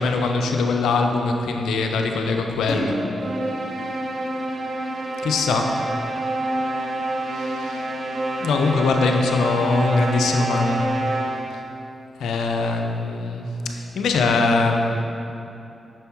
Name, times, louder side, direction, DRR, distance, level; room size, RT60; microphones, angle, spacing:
voice 1, 0.0-3.0 5.2-5.8 7.3-7.9 8.4-10.9 11.5-11.6 12.2-15.0, left 3 dB, 80° left, 3 dB, 0.7 m, -22 dB
sound 1, 2.7-5.2, equal, 60° left, 2.0 m, -31 dB
sound 2, 3.2-11.7, right 1 dB, 60° right, 0.9 m, -27 dB
7.9 x 6.3 x 4.6 m, 2.8 s
supercardioid pair, 45°, 0 cm